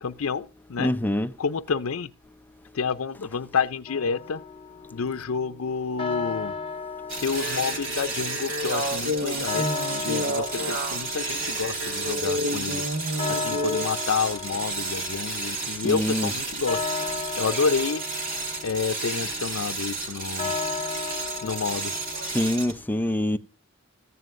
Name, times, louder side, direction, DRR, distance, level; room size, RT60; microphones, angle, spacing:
voice 1, 0.0-0.9 1.4-2.1 2.7-4.4 4.9-6.5 7.2-9.7 10.0-12.8 13.3-16.8 17.4-18.0 18.6-20.5 21.1-21.9, left 5 dB, 80° left, 0.5 m, -29 dB
voice 2, 0.8-1.3 15.7-16.3 22.2-23.4, left 1 dB, 10° left, 0.5 m, -25 dB
sound 1, 3.9-22.5, left 5 dB, 25° left, 0.9 m, -36 dB
sound 2, 7.1-22.8, right 3 dB, 45° right, 2.1 m, -32 dB
sound 3, 7.2-13.9, left 1 dB, 90° right, 1.7 m, -31 dB
14.5 x 9.3 x 2.6 m
head